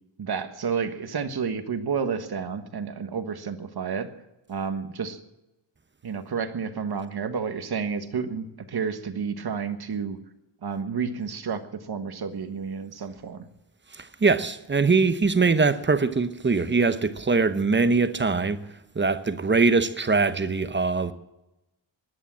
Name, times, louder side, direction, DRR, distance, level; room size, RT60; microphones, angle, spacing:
voice 1, 0.2-4.1 4.5-5.2 6.0-10.2 10.6-13.5, right 6 dB, 55° right, 1.5 m, -30 dB
voice 2, 13.9-18.6 18.9-21.1, right 4 dB, 25° right, 0.9 m, -22 dB
17.0 x 11.5 x 7.5 m
wide cardioid pair, 160°, 45 cm